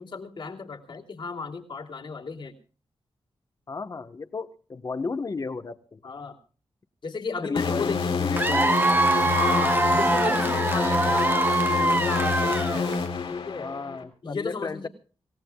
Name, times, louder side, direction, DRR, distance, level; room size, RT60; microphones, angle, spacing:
voice 1, 0.0-2.5 6.0-6.4 7.0-8.2 9.2-12.8 13.3-13.7 14.2-14.9, left 4 dB, 60° left, 1 dB, 3.0 m, -34 dB
voice 2, 3.7-6.0 7.4-8.8 13.6-14.9, left 4 dB, 40° left, 10 dB, 1.3 m, -33 dB
sound 1, 7.6-14.0, left 5 dB, 80° left, 3.2 m, -27 dB
Cheering / Applause / Crowd, 8.4-13.1, right 2 dB, 20° right, 1.0 m, -24 dB
26.5 x 17.0 x 2.3 m, 0.38 s
wide cardioid pair, 145°, 9 cm